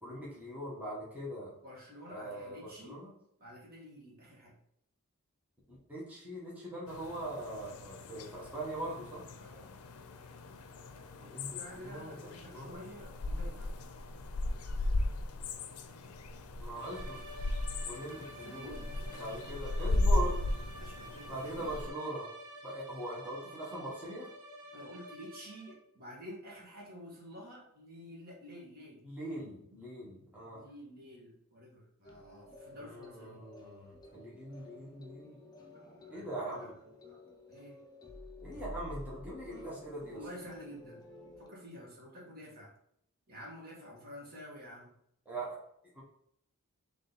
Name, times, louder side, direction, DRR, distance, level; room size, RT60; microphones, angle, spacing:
voice 1, 0.0-1.5 2.1-3.1 5.9-9.2 11.2-12.8 16.6-17.2 17.8-18.8 19.2-20.4 21.3-22.3 22.6-24.3 29.0-30.6 32.8-35.4 36.1-36.7 38.4-40.2 45.2-45.6 45.9-46.0, right 1 dB, 5° right, -7 dB, 1.3 m, -41 dB
voice 2, 1.6-3.0 3.4-4.6 9.4-9.7 11.5-13.7 18.1-18.9 20.7-21.7 24.7-29.0 30.5-33.4 35.7-36.7 37.0-37.2 37.5-37.8 40.1-41.0 41.4-42.7 43.3-44.9, equal, 45° right, -4 dB, 1.5 m, -50 dB
sound 1, 6.9-21.9, left 2 dB, 75° left, 0.5 m, -36 dB
sound 2, 16.7-25.9, equal, 80° right, 1.3 m, -49 dB
sound 3, 32.0-41.5, left 1 dB, 20° left, 0.6 m, -51 dB
3.8 x 3.4 x 4.0 m, 0.72 s
head